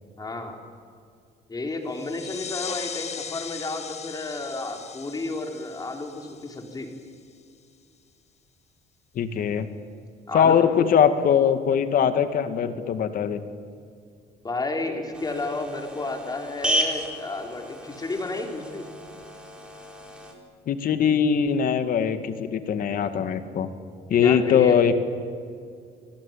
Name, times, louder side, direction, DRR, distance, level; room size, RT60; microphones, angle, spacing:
voice 1, 0.2-0.6 1.5-6.9 10.3-10.9 14.4-18.8 24.1-24.8, left 2 dB, 20° left, 3 dB, 4.4 m, -31 dB
sound 1, 1.9-7.2, left 7 dB, 40° left, 1.4 m, -39 dB
voice 2, 9.2-9.7 10.3-13.4 20.7-23.7 24.1-25.0, left 8 dB, 55° left, 10 dB, 2.2 m, -21 dB
sound 2, 15.1-20.3, equal, 5° right, 4.5 m, -32 dB
28.5 x 19.5 x 9.2 m, 2.3 s
cardioid pair, 110°, 17 cm